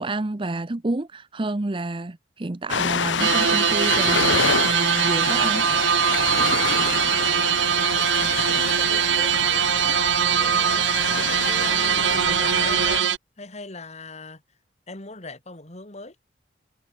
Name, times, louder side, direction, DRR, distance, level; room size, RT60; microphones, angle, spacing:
voice 1, 0.0-4.4 4.6-5.7, right 2 dB, 30° right, 0.7 m, -29 dB
Ocean, 2.7-13.0, left 6 dB, 85° left, 0.9 m, -27 dB
sound 1, 3.2-13.2, right 9 dB, 80° right, 0.6 m, -22 dB
voice 2, 8.5-10.9 11.2-13.1 13.4-14.4 14.9-16.2, left 2 dB, 35° left, 2.5 m, -41 dB
head